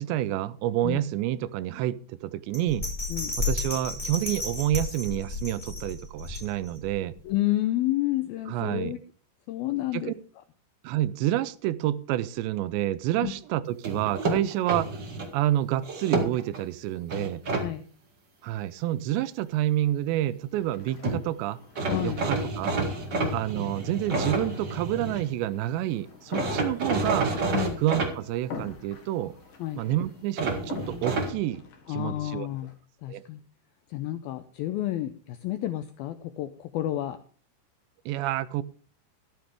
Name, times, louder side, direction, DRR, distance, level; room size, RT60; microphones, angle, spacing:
voice 1, 0.0-2.9 3.4-7.2 8.5-8.9 9.9-10.1 10.8-14.9 15.3-17.4 18.4-21.6 22.0-22.7 23.3-27.3 27.8-29.4 29.8-31.6 31.9-32.5 33.1-33.2 38.1-38.6, right 13 dB, 85° right, 3.0 m, -28 dB
Bell, 2.5-6.9 7.3-7.4, left 3 dB, 10° left, 3.6 m, -32 dB
voice 2, 7.3-9.0 9.5-10.1 13.2-13.3 17.6-17.8 21.9-22.2 23.1-23.3 27.5-27.8 29.6-29.8 31.9-32.7 33.0-33.4 33.9-37.2, left 14 dB, 80° left, 2.2 m, -30 dB
sound 1, 13.8-15.3 15.8-16.6 17.1-17.6 20.7-20.8 21.0-21.2 21.7-25.2 26.3-28.1 30.4-31.3, right 3 dB, 40° right, 1.7 m, -29 dB
sound 2, 20.5-32.7, left 5 dB, 55° left, 3.0 m, -44 dB
13.5 x 12.5 x 3.5 m
omnidirectional pair, 5.1 m